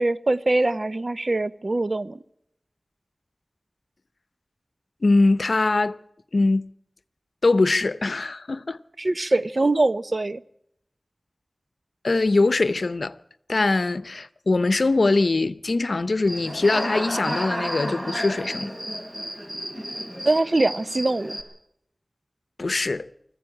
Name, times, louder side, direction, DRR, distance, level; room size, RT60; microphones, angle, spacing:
voice 1, 0.0-2.2 9.0-10.4 20.2-21.3, right 2 dB, 55° right, 0.8 m, -23 dB
voice 2, 5.0-6.0 6.3-6.7 7.4-8.8 12.0-13.2 13.5-18.7 22.6-23.1, left 3 dB, 80° left, 0.7 m, -22 dB
Human voice / Cricket, 16.2-21.4, equal, 35° right, 4.8 m, -32 dB
20.5 x 15.0 x 8.7 m
wide cardioid pair, 50°, 0 cm